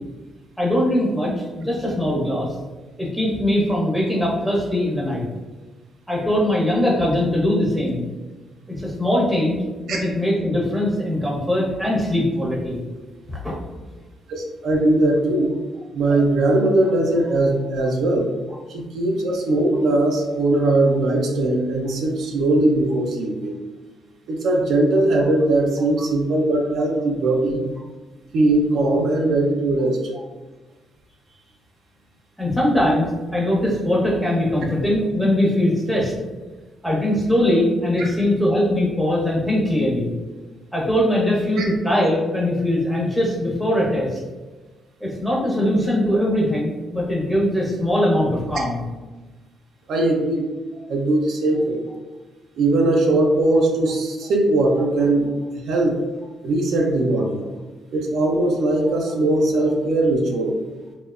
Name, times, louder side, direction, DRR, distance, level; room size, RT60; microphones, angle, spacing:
voice 1, 0.6-2.5 3.0-5.2 6.1-8.0 8.7-9.6 9.9-12.8 13.3-13.5 32.4-36.1 36.8-40.1 40.7-44.2 45.0-48.8, left 1 dB, ahead, -5 dB, 0.9 m, -21 dB
voice 2, 14.3-15.5 15.9-18.3 18.7-23.6 24.3-27.6 28.3-30.0 38.0-38.1 41.6-41.7 49.9-50.5 50.9-51.8 52.6-55.3 55.7-56.0 56.4-57.4 57.9-60.6, right 2 dB, 75° right, 0 dB, 0.4 m, -20 dB
2.8 x 2.0 x 2.4 m, 1.2 s
cardioid pair, 90°, 0 cm